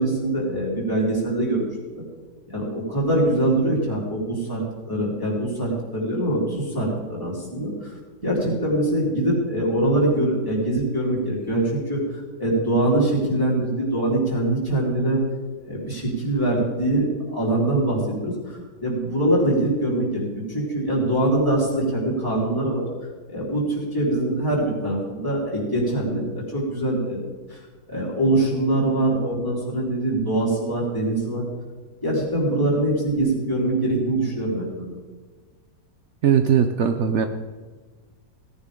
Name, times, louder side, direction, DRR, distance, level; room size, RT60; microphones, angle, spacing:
voice 1, 0.0-1.7 2.0-2.1 2.5-7.9 8.2-12.0 12.4-15.2 15.6-22.9 23.3-27.2 27.5-27.6 27.9-31.4 32.0-34.9, right 1 dB, 10° left, -6 dB, 3.9 m, -23 dB
voice 2, 36.2-37.3, right 8 dB, 80° right, 8 dB, 0.6 m, -19 dB
17.5 x 10.0 x 3.8 m, 1.4 s
omnidirectional pair, 2.0 m